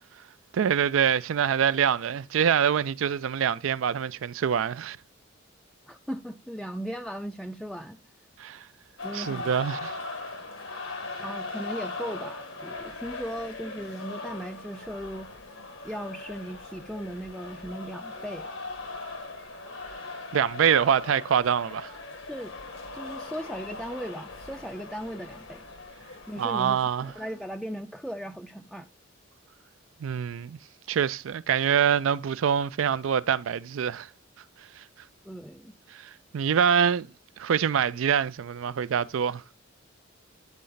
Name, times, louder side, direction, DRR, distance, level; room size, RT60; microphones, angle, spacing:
voice 1, 0.5-5.0 8.4-8.7 9.1-10.0 20.3-21.9 26.4-27.1 30.0-30.6 30.9-34.1 34.8-34.9 35.9-37.1 37.4-39.4, right 8 dB, 80° right, 0.4 m, -25 dB
voice 2, 5.9-8.0 9.0-9.5 11.2-15.3 15.8-18.5 22.3-22.5 22.9-25.7 26.3-26.8 27.2-28.9 35.2-35.7, equal, ahead, 0.4 m, -37 dB
sound 1, 9.0-27.5, left 3 dB, 85° left, 1.6 m, -40 dB
10.0 x 4.2 x 3.9 m
head